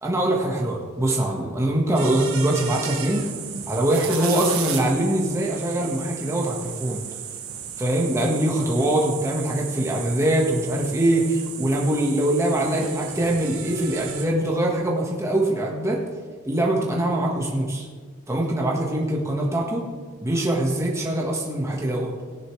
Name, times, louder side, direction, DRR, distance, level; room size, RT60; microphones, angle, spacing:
voice 1, 0.0-3.3 3.7-7.0 7.8-16.0 16.4-17.9 18.3-19.9 20.2-22.1, right 1 dB, 15° right, -2 dB, 1.5 m, -23 dB
sound 1, 2.0-14.3, right 7 dB, 80° right, 1.4 m, -34 dB
16.5 x 10.5 x 3.3 m, 1.5 s
head